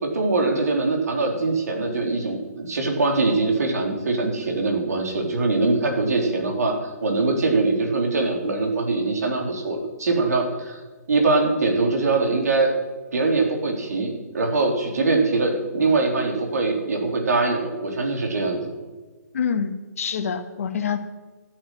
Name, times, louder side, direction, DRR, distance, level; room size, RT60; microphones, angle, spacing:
voice 1, 0.0-10.8 11.1-12.7 13.1-18.6, right 3 dB, 65° right, 2 dB, 3.7 m, -22 dB
voice 2, 19.3-21.0, left 7 dB, 55° left, 7 dB, 1.6 m, -26 dB
13.5 x 8.6 x 8.0 m, 1.3 s
figure-of-eight pair, 135°, 9 cm